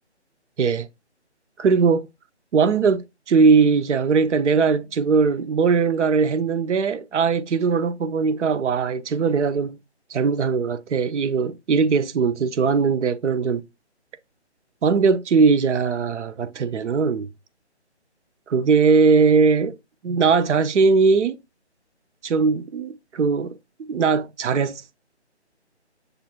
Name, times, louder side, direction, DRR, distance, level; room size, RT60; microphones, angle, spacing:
voice 1, 1.6-2.1 2.5-9.8 10.1-13.6 14.8-17.3 18.5-19.8 20.0-21.4 22.2-23.6 23.9-24.8, right 5 dB, 85° right, 0.5 m, -20 dB
6.6 x 2.4 x 2.8 m
hypercardioid pair, 165°, 35 cm